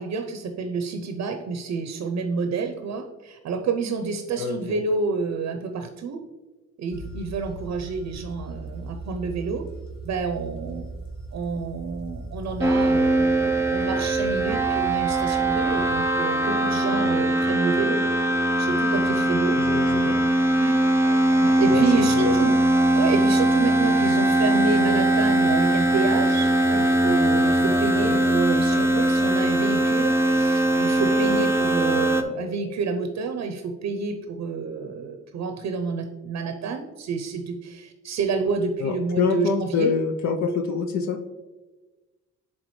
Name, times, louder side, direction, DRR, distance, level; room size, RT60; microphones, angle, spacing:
voice 1, 0.0-6.2 6.8-9.6 10.0-10.8 11.3-18.0 18.6-19.6 20.6-20.8 21.4-22.6 22.9-39.9, right 4 dB, 65° right, 6 dB, 0.7 m, -29 dB
voice 2, 4.4-4.8 19.5-20.2 21.7-22.4 28.0-28.2 38.8-41.2, left 5 dB, 65° left, 5 dB, 0.7 m, -26 dB
sound 1, 6.9-16.1, right 2 dB, 45° left, 2.0 m, -38 dB
sound 2, 12.6-32.2, right 1 dB, 10° right, 0.7 m, -21 dB
10.5 x 3.7 x 3.2 m, 1.2 s
cardioid pair, 90°, 30 cm